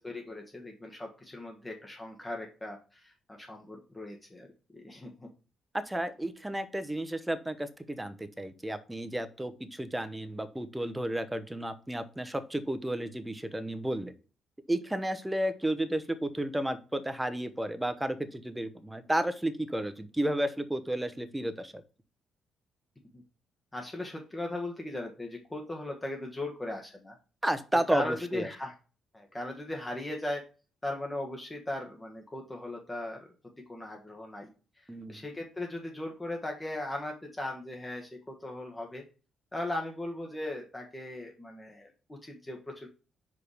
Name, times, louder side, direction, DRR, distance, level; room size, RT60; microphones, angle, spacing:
voice 1, 0.0-4.5 4.7-5.3 23.7-27.2 27.9-28.7 29.1-30.4 30.8-33.2 33.7-34.5 34.8-39.0 39.5-42.9, left 1 dB, 15° left, 1 dB, 1.4 m, -38 dB
voice 2, 5.7-14.1 14.7-21.7 27.4-28.5 34.9-35.2, right 1 dB, 10° right, 11 dB, 0.9 m, -32 dB
5.1 x 4.7 x 4.9 m, 0.36 s
cardioid pair, 90°, 0 cm